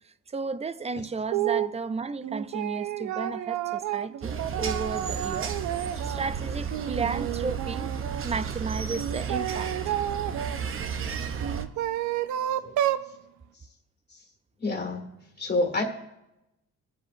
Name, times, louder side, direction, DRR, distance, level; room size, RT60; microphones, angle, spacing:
voice 1, 0.0-10.0, right 4 dB, 20° right, 0.5 m, -34 dB
sound 1, 1.3-1.7 2.2-6.3 6.7-8.2 8.9-10.6 11.4-13.1, right 11 dB, 70° right, 0.5 m, -30 dB
sound 2, 4.2-11.6, right 6 dB, 45° right, 0.8 m, -33 dB
voice 2, 14.6-15.1 15.4-15.8, left 2 dB, 35° left, 1.7 m, -27 dB
22.0 x 7.6 x 2.6 m
cardioid pair, 90°, 30 cm